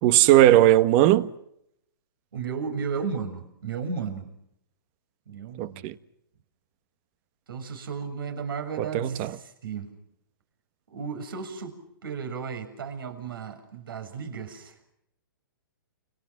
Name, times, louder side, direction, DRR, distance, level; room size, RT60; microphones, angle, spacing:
voice 1, 0.0-1.3 5.6-5.9 8.9-9.3, right 14 dB, 40° right, 1.5 m, -18 dB
voice 2, 2.3-4.3 5.3-5.9 7.5-9.9 10.9-11.8 12.0-14.8, right 5 dB, 75° right, 7.0 m, -34 dB
29.5 x 29.5 x 6.1 m
hypercardioid pair, 130°, 12 cm